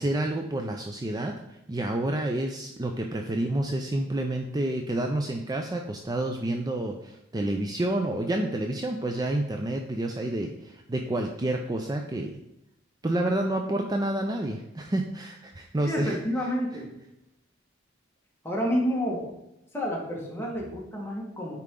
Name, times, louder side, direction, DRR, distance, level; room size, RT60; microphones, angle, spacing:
voice 1, 0.0-12.3 13.0-16.2, right 1 dB, 20° right, 3 dB, 0.5 m, -29 dB
voice 2, 15.8-16.9 18.4-19.3 19.7-21.6, equal, 10° left, -2 dB, 1.6 m, -29 dB
9.7 x 4.4 x 3.7 m, 0.86 s
head